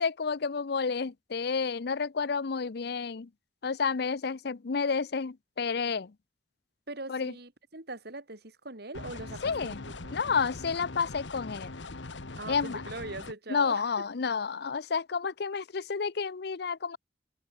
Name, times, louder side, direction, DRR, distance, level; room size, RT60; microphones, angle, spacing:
voice 1, 0.0-3.3 3.6-6.1 7.1-7.3 9.4-9.8 10.1-11.7 12.5-12.8 13.5-17.0, left 5 dB, 60° left, 0.6 m, -30 dB
voice 2, 6.9-10.2 12.4-13.8, right 2 dB, 60° right, 4.7 m, -41 dB
sound 1, 8.9-13.3, left 3 dB, 90° left, 1.4 m, -41 dB
head